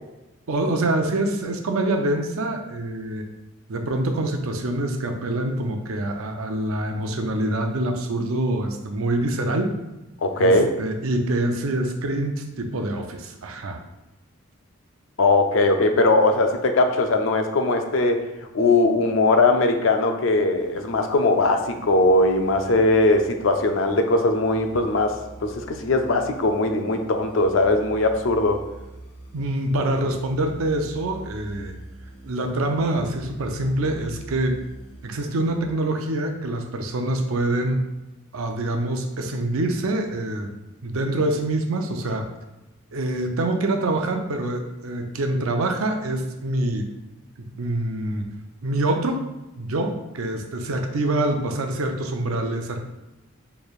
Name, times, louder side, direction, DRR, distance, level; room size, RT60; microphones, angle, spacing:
voice 1, 0.5-3.3 3.7-9.7 10.4-13.8 29.3-31.7 32.2-34.6 35.0-37.8 38.3-40.5 40.8-42.3 42.9-46.9 47.6-48.3 48.6-49.2 49.6-52.8, right 1 dB, 85° right, 4 dB, 0.5 m, -25 dB
voice 2, 10.2-10.7 15.2-18.2 18.5-25.1 25.4-28.6, left 2 dB, 65° left, 5 dB, 0.5 m, -20 dB
sound 1, 20.6-35.6, right 2 dB, 45° left, 1.4 m, -44 dB
4.4 x 3.3 x 2.4 m, 1.0 s
head